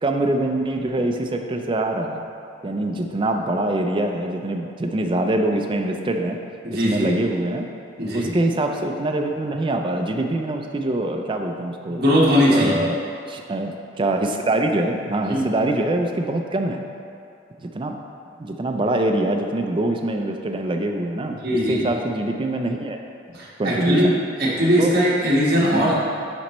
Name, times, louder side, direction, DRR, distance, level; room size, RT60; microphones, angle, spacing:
voice 1, 0.0-2.3 2.6-6.4 6.7-7.6 8.1-12.0 12.5-13.0 13.3-16.8 17.6-18.0 18.4-21.4 21.7-23.0 23.6-24.2 24.8-24.9 25.6-25.9, right 1 dB, 25° right, 3 dB, 0.4 m, -24 dB
voice 2, 6.6-7.1 8.0-8.3 11.9-12.8 15.3-15.4 21.3-21.8 23.3-24.1 24.4-25.9, equal, 55° right, -6 dB, 1.4 m, -20 dB
9.5 x 4.1 x 3.0 m, 2.5 s
head